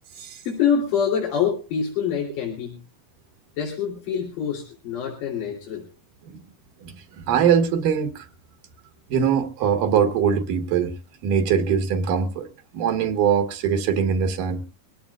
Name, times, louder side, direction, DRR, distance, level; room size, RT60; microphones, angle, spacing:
voice 1, 0.4-2.8 3.6-5.8, left 7 dB, 85° left, 4.8 m, -25 dB
voice 2, 7.3-8.3 9.1-10.9 11.2-12.5 12.7-14.6, right 7 dB, 75° right, 2.9 m, -22 dB
24.0 x 16.5 x 2.4 m
omnidirectional pair, 3.8 m